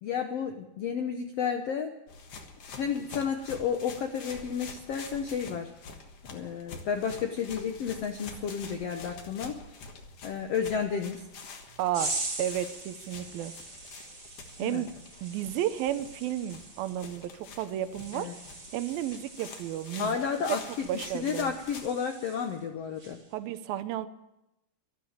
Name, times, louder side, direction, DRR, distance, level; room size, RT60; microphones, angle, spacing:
voice 1, 0.0-1.9 2.7-5.7 6.3-9.6 10.2-11.2 14.6-14.8 18.1-18.3 20.0-20.8 21.1-23.2, left 7 dB, 75° left, 5 dB, 1.4 m, -32 dB
sound 1, 2.1-21.9, left 4 dB, 50° left, 2.1 m, -47 dB
voice 2, 11.8-12.1 12.4-13.5 14.6-14.9 15.2-18.3 18.7-20.2 20.5-20.6 20.9-21.5 23.3-24.1, right 12 dB, 85° right, 12 dB, 2.6 m, -32 dB
sound 2, 11.9-22.6 23.0-23.3, right 2 dB, 20° right, 1.7 m, -42 dB
13.0 x 12.5 x 8.7 m, 0.90 s
omnidirectional pair, 4.1 m